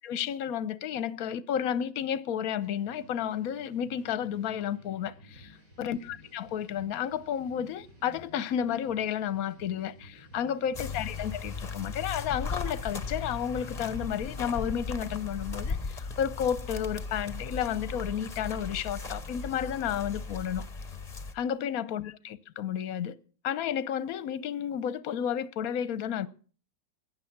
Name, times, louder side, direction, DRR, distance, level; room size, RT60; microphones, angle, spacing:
voice 1, 0.0-20.6 21.3-23.2 23.4-26.3, left 9 dB, 60° left, 1.2 m, -32 dB
sound 1, 2.6-16.3, equal, 50° right, 6.0 m, -54 dB
sound 2, 10.7-21.3, left 4 dB, 25° left, 1.1 m, -37 dB
16.0 x 10.5 x 5.9 m
omnidirectional pair, 1.9 m